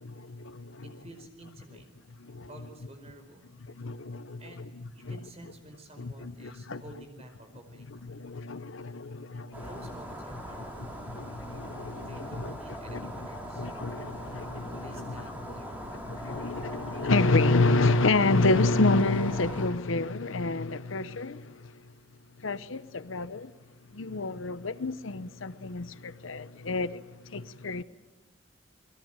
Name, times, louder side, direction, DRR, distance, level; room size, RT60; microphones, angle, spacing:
voice 1, 0.0-0.8 2.2-2.5 3.8-4.4 5.0-5.1 6.0-6.8 8.1-9.7 11.1-12.1 12.4-12.5 12.9-13.0 13.5-14.8 16.1-21.7 22.4-23.5 23.9-27.8, left 3 dB, 75° left, 0.8 m, -28 dB
voice 2, 0.8-1.8 2.5-3.5 4.4-4.6 4.9-8.0 9.6-11.2 12.0-13.7 14.8-16.0, right 1 dB, 30° right, 4.9 m, -50 dB
sound 1, 9.5-19.7, equal, 10° right, 4.3 m, -40 dB
28.5 x 21.0 x 9.1 m
head